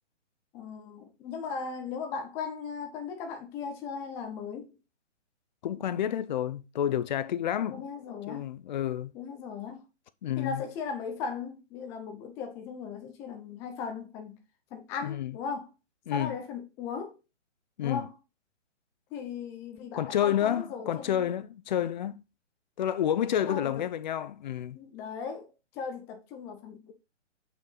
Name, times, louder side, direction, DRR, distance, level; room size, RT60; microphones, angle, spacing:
voice 1, 0.5-4.7 7.7-8.5 9.1-9.8 10.4-14.4 14.7-15.7 16.1-17.2 17.8-18.1 19.1-21.3 23.5-23.9 24.7-26.9, left 5 dB, 5° left, 0.5 m, -38 dB
voice 2, 5.6-7.9 8.3-9.1 10.2-10.6 15.0-15.3 16.1-16.3 17.8-18.0 20.0-22.2 22.8-24.8, left 10 dB, 40° left, 0.7 m, -29 dB
7.6 x 5.8 x 4.0 m
hypercardioid pair, 140°, 36 cm